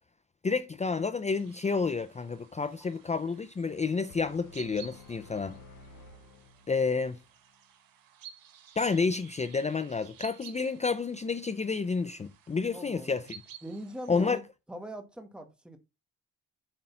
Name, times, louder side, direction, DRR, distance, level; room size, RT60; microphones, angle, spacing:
voice 1, 0.4-5.6 6.7-7.2 8.8-13.2 14.1-14.4, left 4 dB, 20° left, 0.5 m, -30 dB
sound 1, 1.3-14.3, right 9 dB, 80° right, 1.6 m, -54 dB
sound 2, 4.1-7.2, left 3 dB, 70° left, 1.6 m, -52 dB
voice 2, 12.7-13.2 13.6-14.4 14.7-15.8, right 1 dB, 5° right, 1.5 m, -42 dB
8.8 x 3.7 x 5.8 m
cardioid pair, 105°, 34 cm